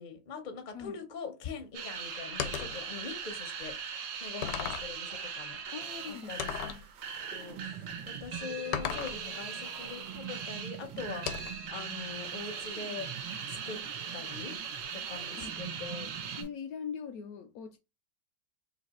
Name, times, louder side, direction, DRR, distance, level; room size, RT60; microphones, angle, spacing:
voice 1, 0.0-3.7 4.2-5.6 6.1-6.9 7.3-13.1 13.5-13.8 14.1-14.5 14.9-16.1, left 5 dB, 50° left, 0.5 m, -43 dB
sound 1, 1.7-16.4, right 6 dB, 60° right, 0.9 m, -40 dB
sound 2, 2.4-2.8 3.6-3.7 4.4-5.0 6.4-6.8 8.7-9.2 11.3-11.7, left 9 dB, 90° left, 1.3 m, -35 dB
voice 2, 5.7-6.8 15.4-15.6 16.4-17.8, left 6 dB, 70° left, 0.9 m, -42 dB
sound 3, 5.8-16.5, right 9 dB, 85° right, 1.4 m, -46 dB
3.2 x 2.9 x 4.0 m
omnidirectional pair, 1.9 m